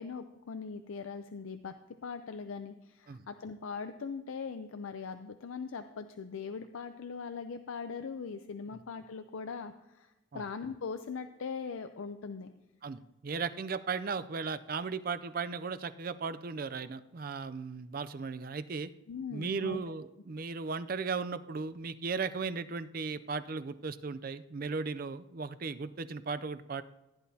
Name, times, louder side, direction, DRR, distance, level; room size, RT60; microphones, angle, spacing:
voice 1, 0.0-1.7 2.0-12.5 19.1-19.8, left 5 dB, 80° left, 8 dB, 0.5 m, -40 dB
voice 2, 12.8-18.9 19.3-26.8, right 4 dB, 45° right, 13 dB, 0.4 m, -36 dB
15.0 x 10.5 x 2.8 m, 0.98 s
head